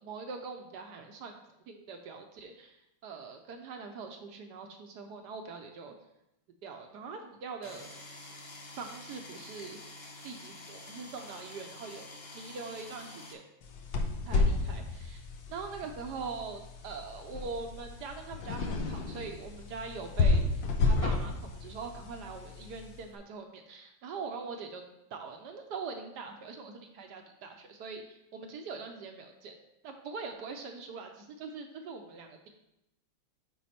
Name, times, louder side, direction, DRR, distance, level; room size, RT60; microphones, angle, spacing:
voice 1, 0.0-1.4 1.7-2.8 3.0-5.9 6.6-7.9 8.8-9.8 10.2-12.1 12.3-13.4 14.3-15.2 15.5-20.4 20.8-24.8 25.1-28.0 28.3-29.6 29.8-32.5, right 4 dB, 65° right, 4 dB, 1.2 m, -42 dB
sound 1, 7.6-13.3, left 2 dB, 40° left, 0.9 m, -48 dB
sound 2, 13.6-23.0, left 3 dB, 70° left, 1.5 m, -31 dB
9.3 x 3.9 x 4.3 m, 0.85 s
omnidirectional pair, 2.1 m